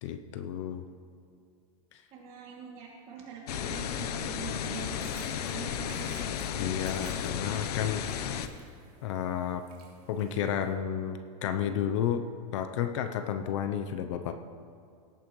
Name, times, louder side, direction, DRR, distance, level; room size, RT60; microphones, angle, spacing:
voice 1, 0.0-0.8 1.9-2.0 6.6-8.1 9.0-9.7 10.1-12.2 12.5-14.3, left 9 dB, 50° left, 8 dB, 0.6 m, -31 dB
voice 2, 2.1-6.3, right 6 dB, 30° right, -2 dB, 2.3 m, -44 dB
sound 1, 3.5-8.5, left 8 dB, 80° left, 0.8 m, -34 dB
sound 2, 4.6-10.7, right 5 dB, 85° right, 2.4 m, -55 dB
17.5 x 8.9 x 3.1 m, 2.4 s
supercardioid pair, 165°, 20 cm